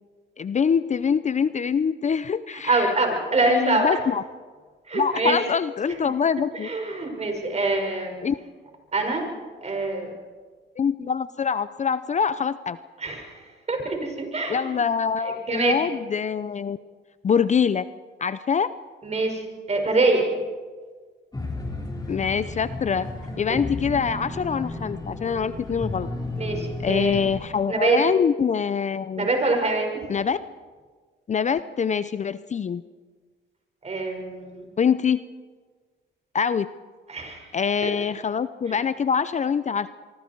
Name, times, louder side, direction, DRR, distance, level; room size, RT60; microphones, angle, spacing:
voice 1, 0.4-2.9 3.5-4.2 4.9-6.7 8.2-8.4 10.8-12.8 14.5-16.8 17.2-17.9 18.2-18.7 22.1-23.1 23.4-26.1 26.8-29.3 30.1-30.4 31.3-32.8 34.8-35.2 36.3-36.7 37.5-39.9, left 6 dB, 35° left, 14 dB, 0.6 m, -24 dB
voice 2, 2.5-3.9 4.9-5.4 6.5-8.2 8.9-9.2 9.6-10.1 13.0-14.8 15.2-15.8 19.0-19.4 19.7-20.3 26.4-27.2 27.7-28.0 29.2-29.9 33.8-34.7 37.1-37.5 37.8-37.9 38.7-38.8, right 3 dB, 35° right, 3 dB, 5.8 m, -25 dB
sound 1, 21.3-27.5, left 2 dB, 20° left, 4.5 m, -33 dB
24.5 x 24.0 x 4.7 m, 1.5 s
cardioid pair, 90°, 20 cm